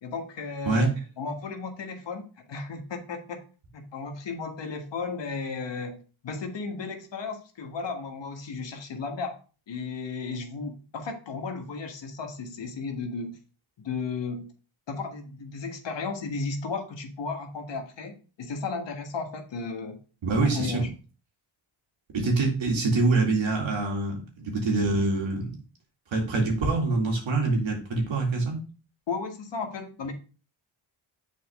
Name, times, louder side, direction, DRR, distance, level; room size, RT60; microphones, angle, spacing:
voice 1, 0.0-2.2 2.5-3.4 3.7-9.4 9.7-13.4 13.8-14.5 14.9-20.0 20.4-20.9 29.1-30.1, left 4 dB, 60° left, 4 dB, 1.6 m, -34 dB
voice 2, 20.2-20.8 22.1-25.6 26.1-28.6, right 3 dB, 70° right, 0 dB, 2.5 m, -25 dB
7.4 x 4.3 x 3.6 m, 0.36 s
cardioid pair, 75°, 48 cm